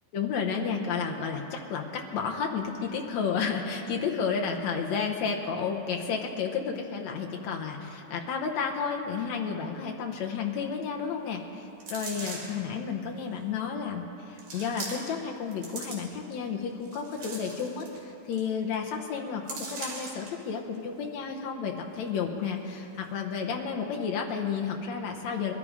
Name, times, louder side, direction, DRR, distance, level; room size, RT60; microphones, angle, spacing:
voice 1, 0.1-25.5, left 6 dB, 70° left, 2 dB, 1.9 m, -32 dB
sound 1, 11.8-12.6 13.4-13.5 14.4-15.2 15.5-16.3 16.8-18.0 18.3-18.4 18.7-18.9 19.5-20.3 20.7-20.8, right 3 dB, 60° right, 3.8 m, -40 dB
21.5 x 12.5 x 5.0 m, 2.9 s
omnidirectional pair, 4.0 m